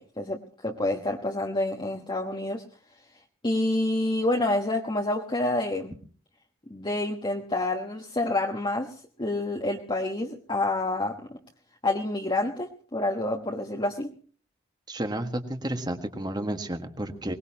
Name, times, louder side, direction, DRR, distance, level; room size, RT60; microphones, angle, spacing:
voice 1, 0.0-2.6 3.4-5.9 6.7-11.4 11.8-14.1, left 2 dB, 25° left, 1 dB, 1.3 m, -28 dB
voice 2, 14.9-17.3, right 1 dB, 20° right, 7 dB, 1.6 m, -31 dB
23.5 x 19.0 x 2.9 m, 0.42 s
head